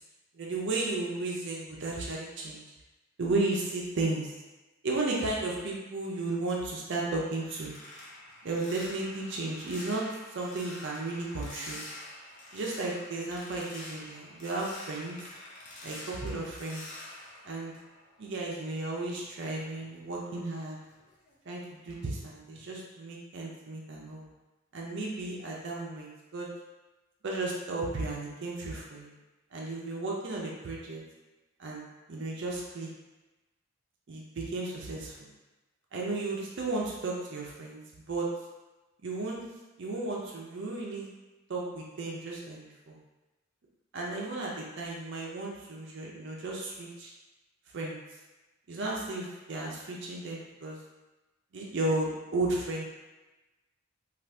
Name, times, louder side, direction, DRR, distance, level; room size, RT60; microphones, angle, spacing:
voice 1, 0.3-2.6 3.2-4.3 4.8-7.7 8.4-10.1 10.3-11.8 12.5-15.2 15.8-16.8 17.4-17.7 18.2-20.8 21.5-24.2 24.7-26.5 27.2-29.2 29.5-31.0 31.6-31.8 32.1-32.9 34.1-35.2 35.9-37.8 38.1-38.3 39.0-39.4 39.8-41.1 41.5-43.0 43.9-47.1 47.7-48.0 48.7-50.8 51.5-52.8, right 2 dB, 55° right, -3 dB, 0.5 m, -34 dB
sound 1, 7.4-18.5 18.9-21.5 21.9-22.2 22.6-22.8, left 1 dB, 35° left, 0.5 m, -47 dB
2.6 x 2.4 x 3.3 m, 1.1 s
head